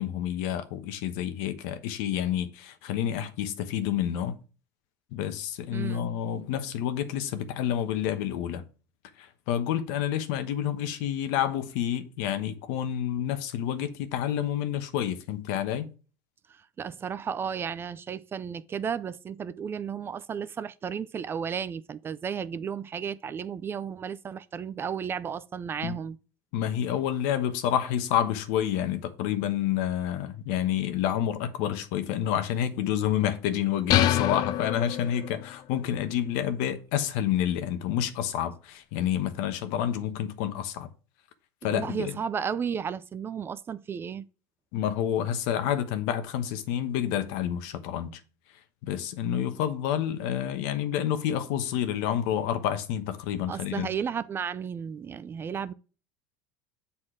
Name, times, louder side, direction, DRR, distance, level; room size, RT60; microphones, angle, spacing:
voice 1, 0.0-4.4 5.1-8.6 9.2-15.9 25.8-26.0 26.5-40.9 41.6-42.1 44.7-48.2 48.8-53.9, left 10 dB, 70° left, 1.1 m, -29 dB
voice 2, 5.7-6.1 16.5-26.2 41.7-44.2 53.5-55.7, right 7 dB, 25° right, 0.4 m, -33 dB
sound 1, 33.9-35.5, left 12 dB, 45° left, 0.5 m, -25 dB
7.8 x 4.3 x 4.9 m
supercardioid pair, 125°, 9 cm